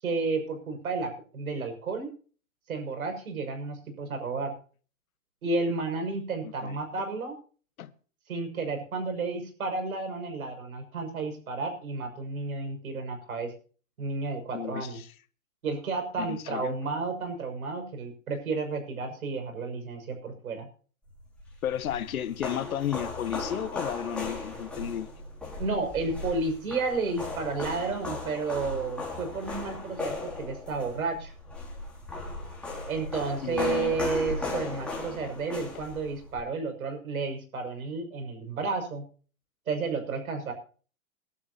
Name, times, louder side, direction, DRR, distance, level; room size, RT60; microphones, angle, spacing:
voice 1, 0.0-2.1 2.7-4.5 5.4-7.4 8.3-13.5 14.0-15.0 15.6-20.7 25.6-31.3 32.9-39.0 39.7-40.5, right 3 dB, 90° right, 6.3 m, -32 dB
voice 2, 6.4-6.8 7.8-7.9 14.5-15.1 16.2-16.8 21.6-25.1 33.4-34.0, left 10 dB, 80° left, 1.6 m, -33 dB
sound 1, 21.4-36.4, left 3 dB, 5° left, 5.2 m, -37 dB
23.0 x 12.0 x 2.8 m
hypercardioid pair, 150°, 41 cm